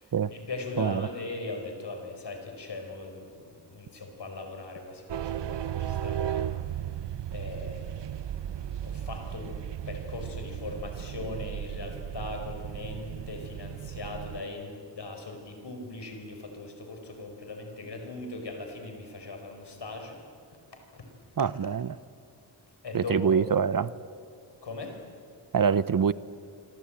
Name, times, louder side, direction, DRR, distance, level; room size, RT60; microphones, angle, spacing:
voice 1, 0.0-6.5 7.3-8.2 8.6-20.2 20.9-21.1 22.8-23.5 24.6-25.0, left 3 dB, 75° left, 4 dB, 4.9 m, -39 dB
voice 2, 0.8-1.1 21.4-22.0 22.9-23.9 25.5-26.1, right 7 dB, 55° right, 17 dB, 0.7 m, -25 dB
sound 1, 5.1-14.4, right 10 dB, 85° right, 0.6 m, -35 dB
26.5 x 25.5 x 8.9 m, 2.4 s
wide cardioid pair, 110°, 41 cm